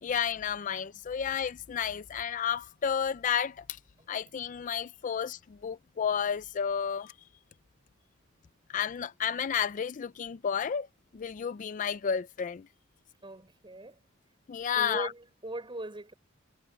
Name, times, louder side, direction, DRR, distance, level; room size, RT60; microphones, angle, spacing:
voice 1, 0.0-3.8 4.1-7.1 8.7-10.9 11.1-12.7 14.5-15.1, left 7 dB, 40° left, 0.4 m, -31 dB
voice 2, 13.2-14.0 14.7-16.1, right 2 dB, 25° right, 4.0 m, -40 dB
head